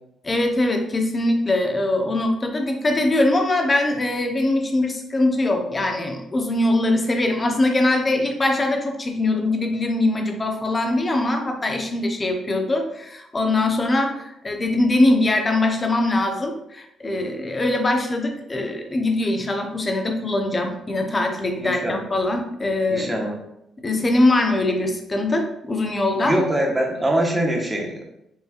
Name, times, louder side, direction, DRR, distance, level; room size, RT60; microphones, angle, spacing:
voice 1, 0.2-23.2 23.8-26.3, left 2 dB, 25° left, 3 dB, 0.7 m, -22 dB
voice 2, 21.6-22.0 22.9-23.3 23.9-24.0 26.2-28.0, right 1 dB, 15° right, 0 dB, 1.1 m, -23 dB
5.4 x 3.3 x 2.4 m, 0.82 s
cardioid pair, 90°, 0 cm